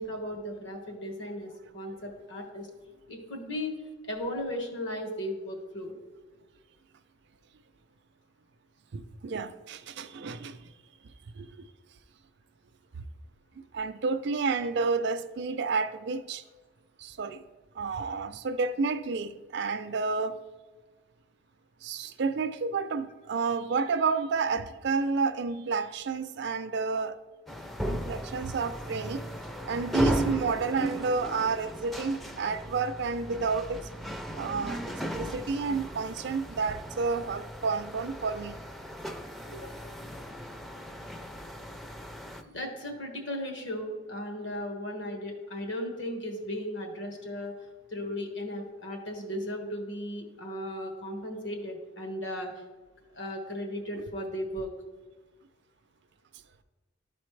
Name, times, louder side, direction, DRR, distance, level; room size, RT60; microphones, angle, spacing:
voice 1, 0.0-2.7 3.1-3.7 4.0-5.9 39.5-39.9 42.5-47.5 47.9-52.5 53.1-54.7, left 1 dB, 75° left, 1.4 m, -36 dB
voice 2, 8.9-10.7 11.4-11.7 13.7-16.4 17.0-17.4 17.8-20.4 21.8-27.2 27.9-29.2 29.7-33.8 34.4-38.6, right 4 dB, 60° right, 0.4 m, -30 dB
sound 1, 27.5-42.4, right 1 dB, ahead, 0.4 m, -36 dB
12.5 x 4.2 x 3.2 m
head